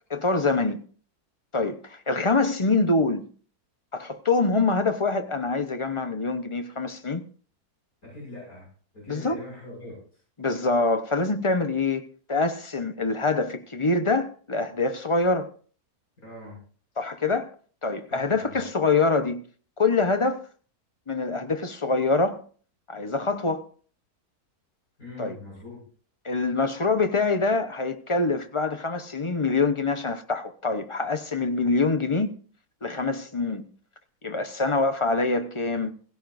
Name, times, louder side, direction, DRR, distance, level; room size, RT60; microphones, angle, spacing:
voice 1, 0.1-0.8 1.5-3.3 3.9-7.2 9.1-9.4 10.4-12.0 12.3-15.5 17.0-17.5 17.8-19.4 19.8-20.4 21.1-22.4 22.9-23.6 25.2-25.4 26.2-32.3 32.8-33.7 34.2-35.9, left 3 dB, 25° left, 0.7 m, -25 dB
voice 2, 8.0-8.7 8.9-10.2 16.2-16.6 18.1-18.6 25.0-25.8, left 2 dB, 70° left, 7.1 m, -42 dB
17.0 x 16.5 x 2.6 m
omnidirectional pair, 1.6 m